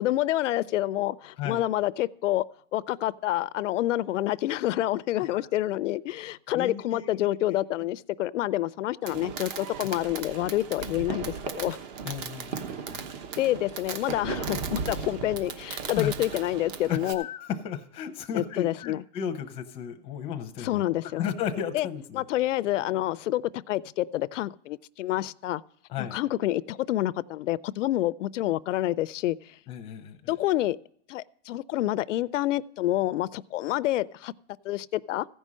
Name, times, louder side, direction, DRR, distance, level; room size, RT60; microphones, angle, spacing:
voice 1, 0.0-2.5 2.7-11.8 13.4-17.2 18.3-19.0 20.6-21.2 21.7-21.9 22.1-25.6 26.0-29.6 30.3-30.8 31.1-34.3 34.6-35.3, left 14 dB, 85° left, 0.5 m, -28 dB
voice 2, 6.5-7.2 12.0-13.1 15.9-16.1 16.9-20.8 21.1-22.2 25.9-26.2 29.7-30.4, left 8 dB, 15° left, 0.7 m, -34 dB
Fireworks, 9.0-17.1, right 6 dB, 35° right, 1.1 m, -36 dB
15.0 x 5.5 x 6.1 m
supercardioid pair, 160°, 36 cm